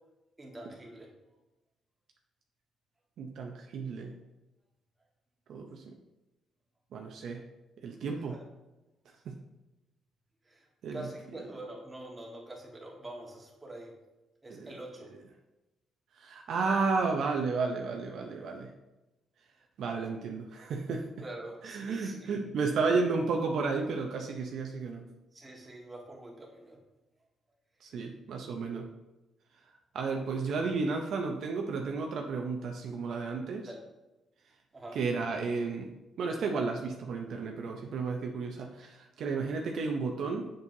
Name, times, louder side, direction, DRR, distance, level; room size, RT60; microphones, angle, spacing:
voice 1, 0.4-1.1 8.3-8.4 10.4-13.9 14.4-15.1 21.2-22.3 25.0-26.8 33.6-33.8 34.7-35.0, right 1 dB, 20° right, -2 dB, 1.7 m, -45 dB
voice 2, 3.2-4.1 5.5-5.9 6.9-7.4 7.8-8.4 9.3-9.4 10.8-11.1 14.5-14.7 16.1-18.7 19.8-21.1 21.6-25.0 27.8-28.9 29.9-33.7 34.9-35.9 36.2-40.5, right 4 dB, 70° right, 2 dB, 0.6 m, -32 dB
7.2 x 6.2 x 2.7 m, 1.0 s
cardioid pair, 90°, 0 cm